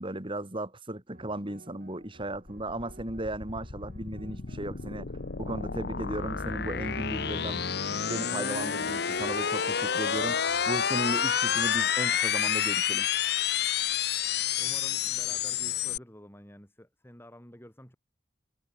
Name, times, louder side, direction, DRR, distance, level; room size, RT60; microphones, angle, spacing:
voice 1, 0.0-5.1 5.4-7.6 7.9-13.1, right 1 dB, 30° right, 3.2 m, -36 dB
sound 1, 1.1-13.6, right 2 dB, 55° right, 3.1 m, -54 dB
sound 2, 2.5-16.0, left 8 dB, 65° left, 1.1 m, -29 dB
voice 2, 14.5-18.0, equal, 15° left, 5.1 m, -50 dB
head